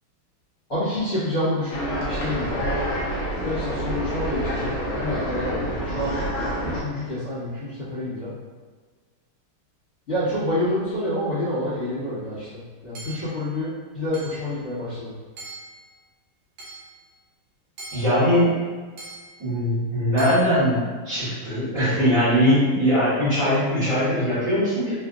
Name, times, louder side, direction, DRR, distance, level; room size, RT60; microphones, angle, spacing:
voice 1, 0.7-2.8 3.4-6.2 6.7-8.3 10.1-15.1, left 1 dB, 40° left, -14 dB, 1.6 m, -28 dB
sound 1, 1.7-6.8, equal, 60° left, 1.0 m, -27 dB
Hammer / Chink clink, 12.9-13.4 14.1-14.5 15.4-15.8 16.6-16.9 17.8-18.2 19.0-19.4 20.2-20.4, right 3 dB, 70° right, 1.5 m, -40 dB
voice 2, 17.9-18.6 19.4-24.9, equal, 45° right, -14 dB, 1.8 m, -21 dB
3.6 x 2.6 x 2.4 m, 1.5 s
omnidirectional pair, 2.3 m